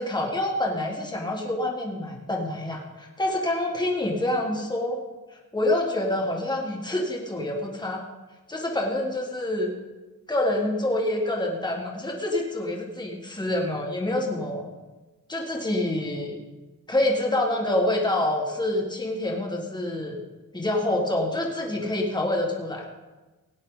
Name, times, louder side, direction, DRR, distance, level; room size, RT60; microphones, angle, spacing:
voice 1, 0.0-5.0 5.3-8.0 8.5-9.7 10.3-14.7 15.3-16.4 16.9-20.2 20.5-22.9, left 1 dB, 10° left, -1 dB, 1.8 m, -27 dB
17.5 x 9.7 x 4.0 m, 1.2 s
wide cardioid pair, 140°, 35 cm